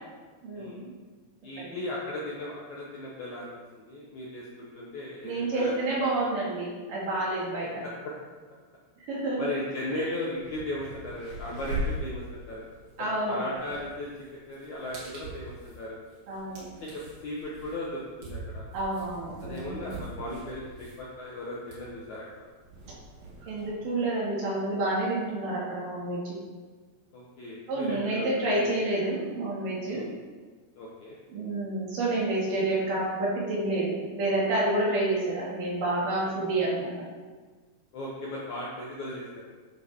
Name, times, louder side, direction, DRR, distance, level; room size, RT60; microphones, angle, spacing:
voice 1, 0.4-0.9 1.6-1.8 5.2-7.8 9.1-9.4 10.0-10.1 13.0-13.4 16.3-16.7 18.7-19.9 23.5-26.4 27.7-30.1 31.3-36.9, right 2 dB, 55° right, -6 dB, 3.5 m, -29 dB
voice 2, 1.4-3.5 3.8-5.8 9.4-12.6 13.3-16.0 16.8-18.7 19.4-22.3 27.1-28.7 29.9-30.1 30.7-31.2 37.9-39.5, left 1 dB, 65° left, -5 dB, 1.9 m, -37 dB
sound 1, 9.9-10.0 10.3-23.7, right 1 dB, 90° right, 5.3 m, -41 dB
10.5 x 8.1 x 3.7 m, 1.4 s
omnidirectional pair, 4.9 m